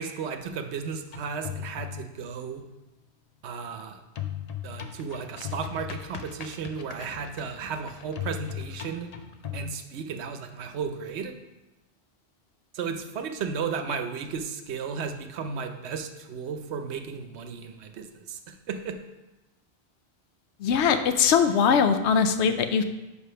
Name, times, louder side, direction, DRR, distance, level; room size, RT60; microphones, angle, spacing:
voice 1, 0.0-2.6 3.4-4.0 4.6-9.1 9.5-11.3 12.7-19.0, right 6 dB, 80° right, 7 dB, 0.9 m, -34 dB
sound 1, 1.0-2.2 4.2-9.7, left 10 dB, 50° left, 0.5 m, -38 dB
voice 2, 20.6-22.8, left 6 dB, 85° left, 9 dB, 0.9 m, -21 dB
5.1 x 4.9 x 5.5 m, 1.0 s
omnidirectional pair, 1.1 m